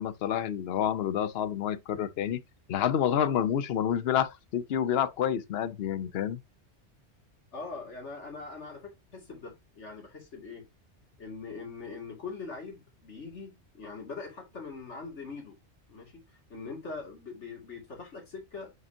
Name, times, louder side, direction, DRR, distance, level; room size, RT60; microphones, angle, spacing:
voice 1, 0.0-2.4 2.7-6.4, left 9 dB, 65° left, 0.9 m, -28 dB
voice 2, 7.5-10.7 11.2-15.6 15.9-16.2 16.5-18.8, left 4 dB, 80° left, 2.8 m, -42 dB
8.0 x 5.3 x 2.8 m
omnidirectional pair, 1.2 m